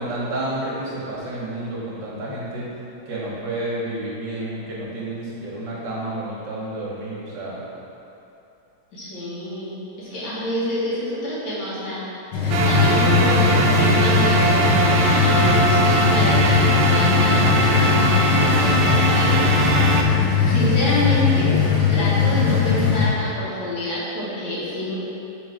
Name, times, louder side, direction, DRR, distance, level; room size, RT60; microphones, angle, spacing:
voice 1, 0.0-2.7 3.1-7.6, right 1 dB, 55° right, -6 dB, 1.9 m, -30 dB
voice 2, 8.9-12.0 12.6-19.3 20.3-21.6 21.9-25.0, equal, 60° left, -9 dB, 2.2 m, -27 dB
sound 1, 12.3-23.1, left 7 dB, 75° left, 2.0 m, -20 dB
sound 2, 12.5-20.0, right 3 dB, 75° right, 1.3 m, -20 dB
7.0 x 4.0 x 4.8 m, 2.8 s
omnidirectional pair, 2.4 m